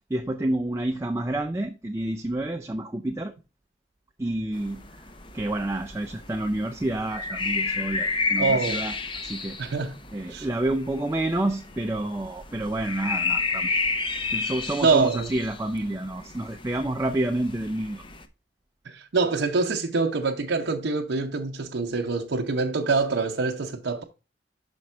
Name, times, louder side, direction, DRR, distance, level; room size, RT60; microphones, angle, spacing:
voice 1, 0.1-3.3 4.2-4.8 5.3-8.9 9.2-9.6 10.1-13.7 14.3-18.0, right 1 dB, 15° right, 0.4 m, -29 dB
sound 1, 4.5-18.2, left 4 dB, 25° left, 0.6 m, -32 dB
voice 2, 8.4-8.8 9.6-10.0 10.3-10.5 14.8-15.3 18.8-24.0, right 4 dB, 80° right, 0.7 m, -25 dB
6.0 x 5.2 x 4.3 m
head